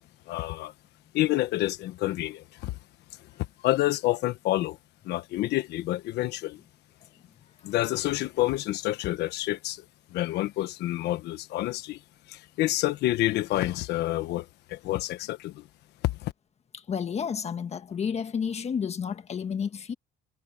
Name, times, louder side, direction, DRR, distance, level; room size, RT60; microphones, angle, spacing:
voice 1, 0.3-0.7 1.1-2.8 3.2-4.8 5.0-6.6 7.6-9.8 10.1-12.0 12.3-15.7 16.0-16.3, left 16 dB, 80° left, 1.3 m, -28 dB
voice 2, 16.7-19.9, left 7 dB, 40° left, 1.5 m, -31 dB
cardioid pair, 110°, 17 cm